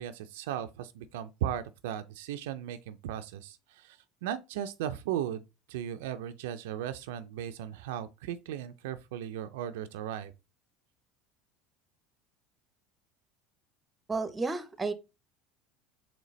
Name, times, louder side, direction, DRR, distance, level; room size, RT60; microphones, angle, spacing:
voice 1, 0.0-5.4 5.7-10.3, right 10 dB, 80° right, 0.3 m, -36 dB
voice 2, 14.1-14.9, right 3 dB, 20° right, 0.6 m, -32 dB
3.9 x 3.1 x 3.1 m
supercardioid pair, 95°, 0 cm